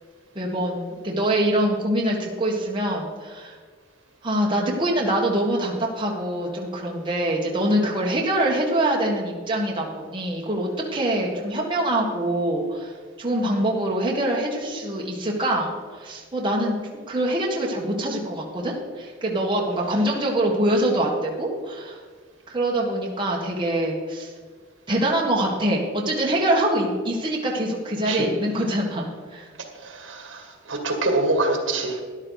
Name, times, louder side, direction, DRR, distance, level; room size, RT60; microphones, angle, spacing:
voice 1, 0.3-3.6 4.2-16.7 17.1-22.0 22.5-24.3 24.9-29.5, right 1 dB, 25° right, -2 dB, 1.5 m, -24 dB
voice 2, 29.9-30.4 30.7-32.0, right 2 dB, 70° right, 3 dB, 2.0 m, -24 dB
13.0 x 11.0 x 4.0 m, 1.5 s
head